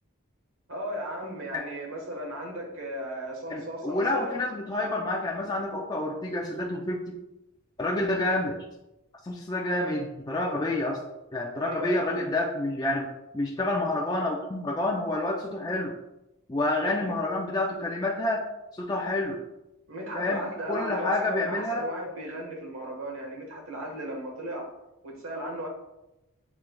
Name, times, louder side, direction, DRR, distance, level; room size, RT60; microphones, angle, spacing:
voice 1, 0.7-4.4 11.6-12.3 16.9-17.0 19.9-24.7 25.0-25.7, equal, 70° right, 0 dB, 1.2 m, -36 dB
voice 2, 3.5-7.0 7.8-8.6 9.2-11.0 11.3-16.0 16.5-18.5 18.7-19.4 20.1-21.8, left 2 dB, 20° left, -2 dB, 0.3 m, -28 dB
7.2 x 3.2 x 2.2 m, 0.93 s
head